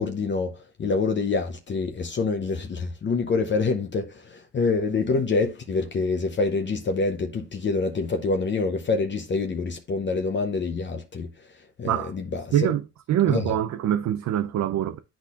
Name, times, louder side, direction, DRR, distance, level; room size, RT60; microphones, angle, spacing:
voice 1, 0.0-11.3 11.8-12.7 13.3-13.5, left 4 dB, 40° left, 0.7 m, -26 dB
voice 2, 12.5-15.0, right 11 dB, 65° right, 0.6 m, -24 dB
10.0 x 4.2 x 2.4 m
cardioid pair, 90°, 30 cm